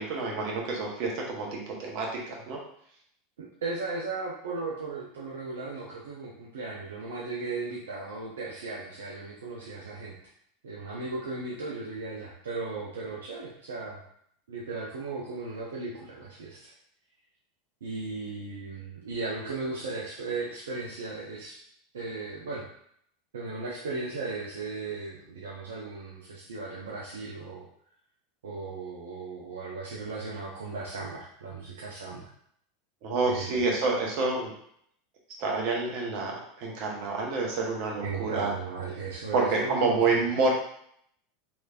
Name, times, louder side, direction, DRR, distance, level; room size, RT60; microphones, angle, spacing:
voice 1, 0.0-2.6 33.0-34.5 35.4-38.5 39.3-40.5, right 3 dB, 55° right, -1 dB, 1.0 m, -28 dB
voice 2, 3.4-10.2 10.6-14.0 14.5-16.7 17.8-21.6 21.9-22.6 23.3-27.6 28.4-32.3 33.2-33.6 38.0-40.2, right 3 dB, 70° right, -5 dB, 0.6 m, -36 dB
3.3 x 3.1 x 2.4 m, 0.67 s
figure-of-eight pair, 80°, 0 cm